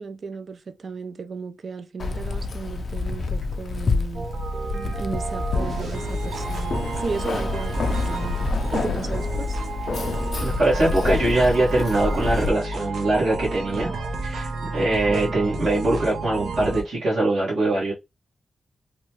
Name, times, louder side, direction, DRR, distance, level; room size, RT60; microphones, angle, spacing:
voice 1, 0.0-4.3 4.9-9.6, right 4 dB, 45° right, 0.3 m, -35 dB
Keys jangling, 2.0-12.5, left 4 dB, 50° left, 0.3 m, -28 dB
sound 1, 4.1-16.8, right 2 dB, 85° right, 0.7 m, -31 dB
voice 2, 10.4-13.9 14.2-17.9, right 2 dB, 70° right, 1.3 m, -22 dB
2.9 x 2.2 x 2.9 m
wide cardioid pair, 165°, 0 cm